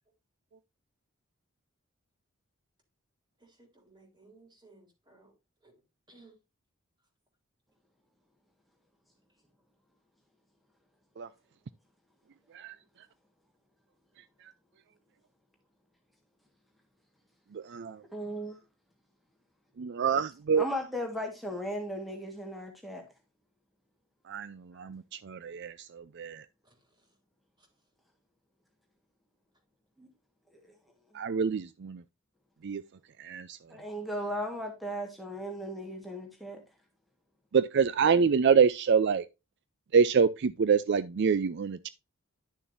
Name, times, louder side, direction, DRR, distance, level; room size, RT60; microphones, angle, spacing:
voice 1, 3.4-5.3 5.6-5.7 6.1-6.3 26.6-26.7 27.6-27.7, right 3 dB, 20° right, 3.6 m, -59 dB
voice 2, 17.5-18.0 19.8-20.7 24.3-26.4 31.1-32.0 32.6-32.8 33.2-33.6 37.5-39.2 39.9-41.9, right 6 dB, 55° right, 0.4 m, -26 dB
voice 3, 18.1-18.6 20.6-23.0 30.0-30.1 33.7-36.6, equal, ahead, 1.5 m, -36 dB
11.5 x 7.0 x 2.6 m
head